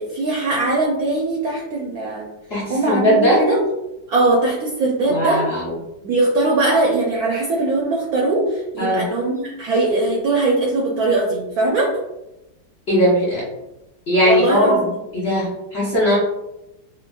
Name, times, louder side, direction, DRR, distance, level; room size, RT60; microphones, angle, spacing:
voice 1, 0.0-2.3 2.7-3.6 4.1-5.6 6.0-11.9 14.2-15.0, right 2 dB, 70° right, -2 dB, 0.9 m, -20 dB
voice 2, 2.5-3.4 5.1-5.7 8.8-9.0 12.9-13.4 14.1-14.9 15.1-16.2, equal, 40° left, -8 dB, 1.0 m, -18 dB
5.0 x 2.1 x 2.2 m, 0.93 s
omnidirectional pair, 2.0 m